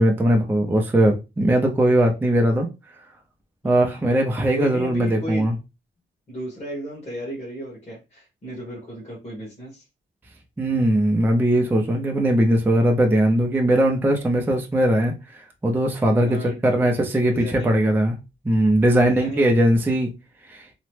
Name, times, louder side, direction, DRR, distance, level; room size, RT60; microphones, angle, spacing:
voice 1, 0.0-2.7 3.6-5.5 10.6-15.1 15.6-18.2 18.4-20.1 20.5-20.6, right 1 dB, 10° right, 0.4 m, -19 dB
voice 2, 3.6-4.0 4.5-5.5 6.3-9.8 16.2-16.6 17.2-17.8 19.0-19.5, right 1 dB, 35° left, 1.2 m, -34 dB
2.9 x 2.0 x 3.1 m
wide cardioid pair, 155°, 21 cm